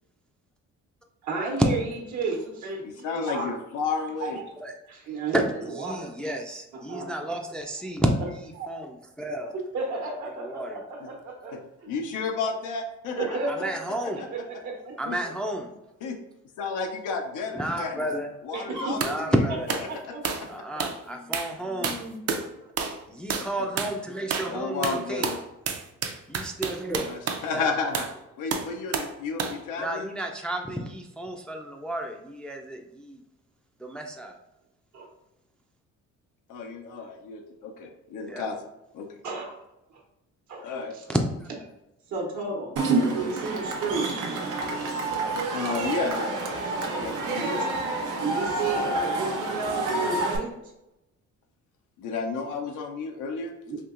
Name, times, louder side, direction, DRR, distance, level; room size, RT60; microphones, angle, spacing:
voice 1, 1.2-1.8 2.1-3.5 4.2-4.4 4.9-5.4 5.7-6.1 6.7-7.1 8.6-8.7 9.5-11.9 13.2-13.7 14.3-15.3 18.5-19.0 19.9-20.6 21.6-22.2 34.9-35.1 39.2-39.6 39.9-40.0 40.5-40.7 40.9-41.0 42.1-42.7 43.1-44.1 45.6-45.7 47.4-47.7 48.2-50.5 53.6-53.8, right 4 dB, 70° right, -1 dB, 1.1 m, -32 dB
voice 2, 2.8-4.4 11.5-11.6 11.9-13.4 15.1-15.2 16.0-16.2 16.6-18.0 18.4-19.3 23.4-23.5 24.5-25.4 27.0-28.1 28.4-30.1 36.5-38.6 38.9-39.1 40.6-40.9 44.8-44.9 45.5-46.4 47.0-47.7 52.0-53.5, left 4 dB, 90° left, 3 dB, 0.5 m, -32 dB
voice 3, 5.8-8.1 8.3-9.5 10.4-10.8 13.5-14.3 15.0-15.7 17.5-18.3 19.0-19.7 20.5-22.0 23.1-25.3 26.3-27.1 27.5-27.7 29.8-33.2 33.8-34.4 38.3-38.5 41.1-41.5, right 1 dB, 5° left, 2 dB, 0.4 m, -31 dB
sound 1, 19.0-19.2 19.7-19.9 20.2-20.5 20.8-21.0 21.3-21.5 21.8-22.5 22.8-23.0 23.3-23.5 23.8-24.0 24.3-24.5 24.8-27.5 27.9-28.1 28.5-29.1 29.4-29.6, right 5 dB, 55° right, 0.6 m, -30 dB
Cheering / Crowd, 42.8-50.4, right 2 dB, 90° right, 0.7 m, -28 dB
4.4 x 2.8 x 2.4 m, 0.92 s
cardioid pair, 90°, 30 cm